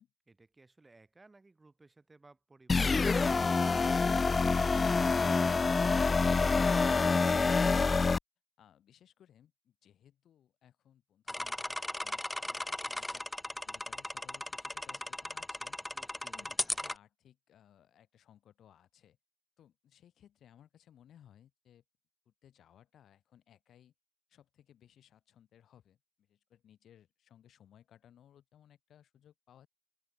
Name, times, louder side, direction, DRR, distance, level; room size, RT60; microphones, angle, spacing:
voice 1, 0.3-3.2 15.9-16.8, right 3 dB, 20° right, 6.3 m, -61 dB
sound 1, 2.7-8.2, left 4 dB, 30° left, 0.3 m, -26 dB
voice 2, 8.6-13.3 13.6-15.8 16.2-19.2 19.6-21.8 22.2-23.9 24.3-29.7, left 10 dB, 70° left, 4.9 m, -62 dB
sound 2, 11.3-16.9, left 1 dB, 10° left, 1.0 m, -37 dB
open air
cardioid pair, 90°, 0 cm